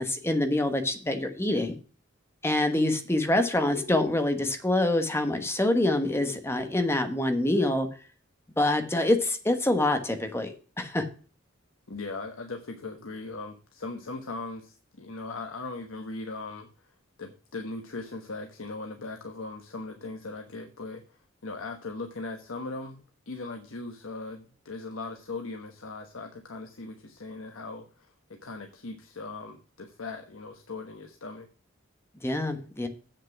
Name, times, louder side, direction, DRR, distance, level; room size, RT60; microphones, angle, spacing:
voice 1, 0.0-1.8 2.4-7.9 8.6-11.0 32.2-32.9, left 1 dB, 10° left, 7 dB, 1.2 m, -26 dB
voice 2, 11.9-16.9 17.2-31.5, left 3 dB, 85° left, 4 dB, 1.2 m, -39 dB
7.8 x 6.6 x 5.8 m, 0.40 s
head